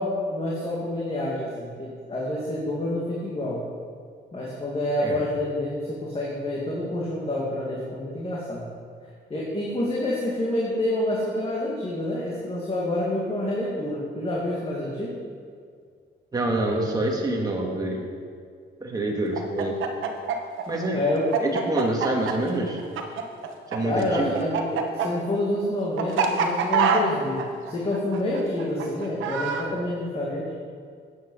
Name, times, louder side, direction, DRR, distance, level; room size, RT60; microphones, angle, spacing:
voice 1, 0.0-3.6 4.3-8.7 9.3-15.1 20.9-21.3 23.8-30.4, left 1 dB, 30° left, -4 dB, 2.0 m, -28 dB
voice 2, 16.3-18.0 18.8-19.8 20.7-21.0 21.4-22.8 23.7-24.4, right 2 dB, 20° right, -1 dB, 1.6 m, -26 dB
Chicken rooster, 19.3-23.8 24.0-29.6, right 6 dB, 80° right, 1.0 m, -25 dB
9.1 x 8.2 x 5.4 m, 2.1 s
cardioid pair, 90°, 20 cm